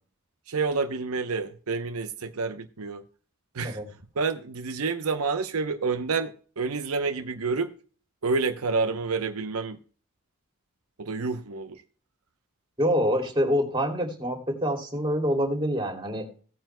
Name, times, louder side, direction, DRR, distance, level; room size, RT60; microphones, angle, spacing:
voice 1, 0.5-3.0 3.5-3.8 4.2-7.7 8.2-9.8 11.0-11.8, right 4 dB, 85° right, 0.8 m, -28 dB
voice 2, 12.8-16.3, equal, 20° right, 2.7 m, -26 dB
17.5 x 9.1 x 2.2 m
head